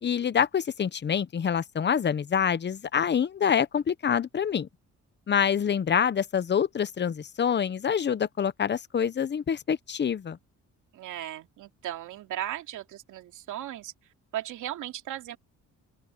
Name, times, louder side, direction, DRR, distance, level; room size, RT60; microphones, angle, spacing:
voice 1, 0.0-4.7 5.3-10.4, left 7 dB, 35° left, 0.8 m, -26 dB
voice 2, 10.9-13.9 14.3-15.4, right 12 dB, 80° right, 2.6 m, -36 dB
open air
cardioid pair, 90°, 30 cm